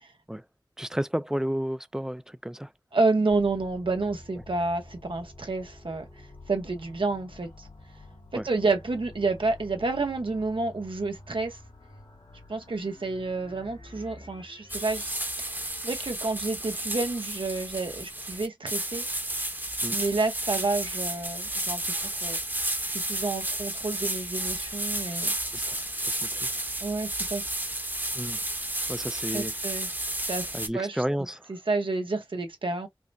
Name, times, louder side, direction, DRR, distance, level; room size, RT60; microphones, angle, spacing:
voice 1, 0.8-2.7 8.3-8.5 19.8-20.0 25.5-26.5 28.1-28.4 28.9-29.5 30.5-31.5, equal, 5° right, 0.4 m, -32 dB
voice 2, 2.9-6.0 6.5-7.7 8.4-11.6 12.5-15.1 15.4-19.0 19.9-22.4 22.9-25.3 26.8-27.4 29.3-29.9 30.3-31.0 31.5-32.9, right 3 dB, 85° right, 0.9 m, -29 dB
sound 1, 3.3-15.3, left 2 dB, 80° left, 2.3 m, -49 dB
sound 2, 14.7-30.7, right 1 dB, 20° right, 0.9 m, -32 dB
4.9 x 2.1 x 2.6 m
wide cardioid pair, 40°, 9 cm